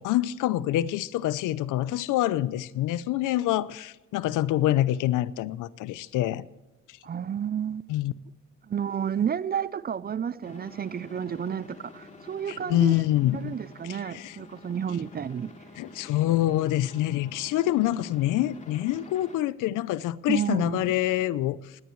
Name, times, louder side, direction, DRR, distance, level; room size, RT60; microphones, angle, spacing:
voice 1, 0.0-6.4 7.9-8.1 12.5-13.5 13.9-14.4 15.8-21.8, left 14 dB, 90° left, 0.7 m, -26 dB
voice 2, 7.0-7.9 8.7-12.9 13.4-15.5 20.3-20.9, right 8 dB, 30° right, 0.5 m, -31 dB
sound 1, 10.4-19.4, left 2 dB, 25° left, 2.7 m, -49 dB
18.5 x 17.5 x 3.2 m
cardioid pair, 90°, 30 cm